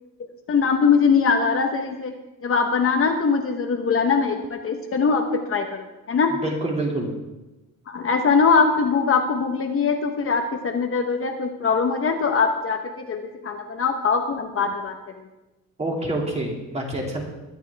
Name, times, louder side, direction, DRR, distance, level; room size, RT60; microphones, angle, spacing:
voice 1, 0.5-2.1 2.4-6.3 7.9-15.0, left 5 dB, 35° left, 4 dB, 1.1 m, -22 dB
voice 2, 6.4-7.1 15.8-17.2, right 1 dB, 15° right, 0 dB, 2.6 m, -26 dB
22.0 x 10.5 x 3.5 m, 1.1 s
cardioid pair, 160°, 36 cm